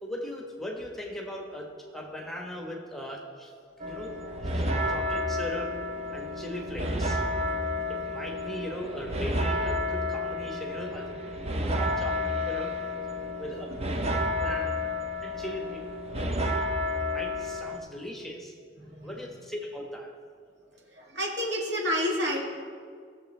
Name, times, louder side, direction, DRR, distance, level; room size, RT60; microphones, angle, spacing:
voice 1, 0.0-3.5 3.8-4.1 4.4-5.8 6.1-7.2 7.9-11.1 11.6-12.8 13.4-13.7 14.4-14.9 15.2-15.8 17.1-18.5 19.0-20.1, equal, ahead, -1 dB, 1.1 m, -39 dB
sound 1, 3.8-17.8, left 1 dB, 35° right, 0.6 m, -30 dB
voice 2, 18.8-19.1 20.9-22.4, equal, 75° right, -3 dB, 2.2 m, -29 dB
18.5 x 7.0 x 3.2 m, 2.1 s
head